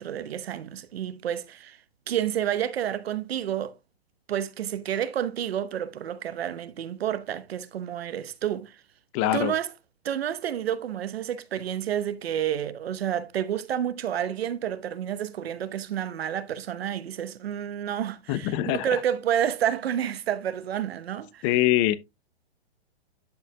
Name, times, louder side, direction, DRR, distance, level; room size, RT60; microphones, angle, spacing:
voice 1, 0.0-1.8 2.1-3.7 4.3-8.8 9.3-9.7 10.0-21.4, right 10 dB, 75° right, 1.0 m, -29 dB
voice 2, 9.1-9.5 18.3-18.9 21.4-22.0, left 14 dB, 30° left, 0.7 m, -23 dB
11.0 x 6.5 x 2.3 m
hypercardioid pair, 135°, 31 cm